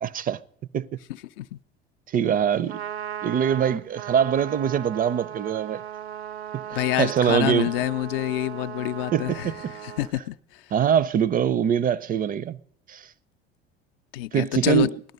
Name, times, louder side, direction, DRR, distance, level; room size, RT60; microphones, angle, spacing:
voice 1, 0.0-0.4 0.7-0.9 2.1-2.8 3.2-5.8 6.5-7.7 9.1-9.5 10.7-12.6 12.9-13.0 14.3-14.9, right 8 dB, 25° right, 0.5 m, -23 dB
voice 2, 1.1-1.6 6.7-10.7 14.1-14.9, left 16 dB, 60° left, 0.6 m, -27 dB
Trumpet, 2.5-10.1, right 10 dB, 80° right, 0.7 m, -37 dB
17.5 x 12.0 x 5.4 m
figure-of-eight pair, 65°, 32 cm